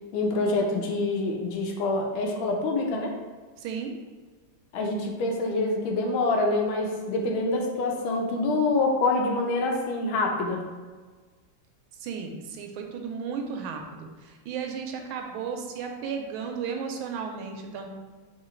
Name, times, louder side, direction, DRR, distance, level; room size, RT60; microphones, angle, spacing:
voice 1, 0.1-3.1 4.7-10.7, left 2 dB, 80° left, 1 dB, 1.4 m, -26 dB
voice 2, 3.6-3.9 12.0-17.9, right 6 dB, 80° right, 3 dB, 1.4 m, -34 dB
3.8 x 2.7 x 4.3 m, 1.4 s
omnidirectional pair, 2.3 m